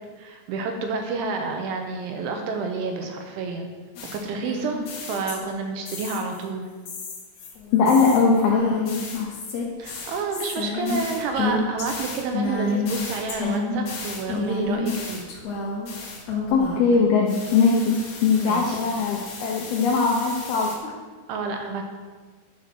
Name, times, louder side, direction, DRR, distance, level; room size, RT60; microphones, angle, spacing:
voice 1, 0.2-3.7 4.1-6.7 9.8-15.3 18.4-18.8 21.3-21.8, right 4 dB, 80° right, 4 dB, 3.0 m, -29 dB
sound 1, 4.0-5.6 5.9-6.4 6.9-17.0 17.3-20.8, left 3 dB, 65° left, 1.9 m, -31 dB
voice 2, 7.7-9.3 16.5-21.0, left 5 dB, 85° left, -1 dB, 2.2 m, -21 dB
11.0 x 6.9 x 6.1 m, 1.4 s
omnidirectional pair, 6.0 m